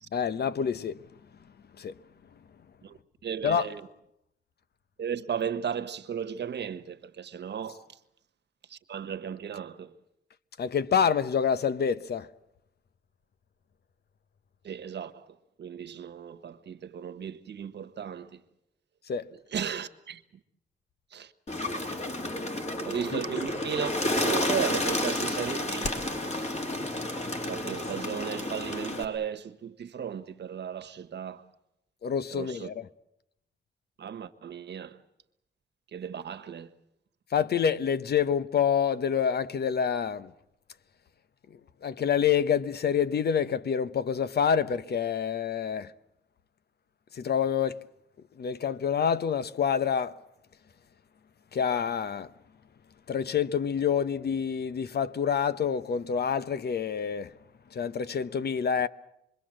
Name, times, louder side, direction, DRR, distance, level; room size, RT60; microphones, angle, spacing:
voice 1, 0.1-1.0 1.8-1.9 3.4-3.7 10.6-12.3 19.1-19.3 32.0-32.8 37.3-40.3 41.8-45.9 47.1-47.8 48.4-50.1 51.5-52.3 53.1-57.3 57.7-58.9, left 7 dB, 60° left, 0.9 m, -27 dB
voice 2, 2.8-3.9 5.0-7.9 8.7-10.0 14.6-18.4 19.5-20.2 21.1-21.3 22.8-23.9 24.2-25.9 26.3-26.5 27.4-31.4 32.3-32.7 34.0-35.0 35.9-36.7, right 8 dB, 65° right, 1.4 m, -35 dB
Bird, 21.5-29.0, left 1 dB, 35° left, 3.1 m, -31 dB
26.5 x 22.5 x 7.6 m
wide cardioid pair, 120°, 19 cm